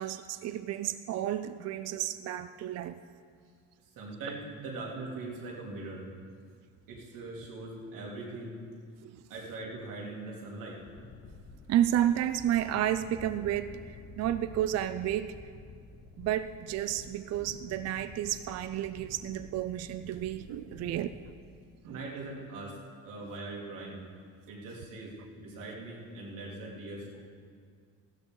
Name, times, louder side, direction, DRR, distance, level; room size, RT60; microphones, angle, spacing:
voice 1, 0.0-3.0 9.0-9.2 11.7-15.4 16.2-21.2 21.9-22.0, right 12 dB, 55° right, 11 dB, 0.4 m, -31 dB
voice 2, 3.9-6.0 6.9-8.5 9.3-10.8 21.8-22.8 23.0-24.0 24.5-27.2, right 2 dB, 80° right, -4 dB, 3.2 m, -41 dB
sound 1, 10.8-21.3, left 4 dB, 30° left, 0.8 m, -50 dB
16.5 x 12.5 x 3.9 m, 2.1 s
cardioid pair, 175°, 32 cm